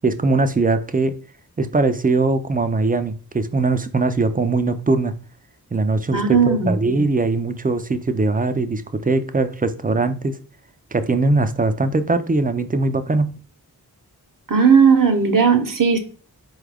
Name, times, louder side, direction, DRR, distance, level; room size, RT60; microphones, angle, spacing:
voice 1, 0.0-1.1 1.6-5.1 5.7-10.4 10.9-13.3, right 3 dB, 25° right, 10 dB, 0.3 m, -21 dB
voice 2, 6.1-6.8 14.5-16.0, right 6 dB, 55° right, 6 dB, 0.7 m, -16 dB
4.3 x 2.4 x 3.3 m, 0.39 s
wide cardioid pair, 60°, 39 cm